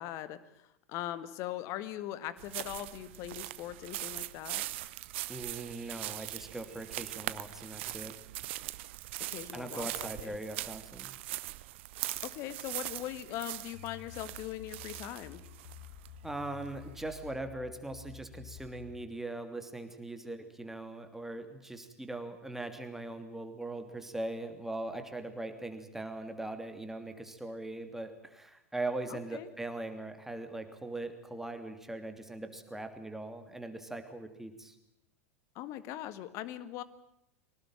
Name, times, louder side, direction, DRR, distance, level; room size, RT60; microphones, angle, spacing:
voice 1, 0.0-4.7 9.3-9.9 10.2-10.4 12.2-15.4 29.1-29.5 35.6-36.8, left 13 dB, 40° left, 14 dB, 1.8 m, -41 dB
sound 1, 2.4-17.3, right 17 dB, 55° right, 0.9 m, -41 dB
voice 2, 5.3-8.2 9.5-11.1 16.2-34.8, right 2 dB, 5° right, 7 dB, 3.0 m, -40 dB
sound 2, 13.7-19.1, left 10 dB, 55° left, 2.1 m, -51 dB
24.0 x 19.0 x 9.0 m, 0.81 s
figure-of-eight pair, 90°, 8 cm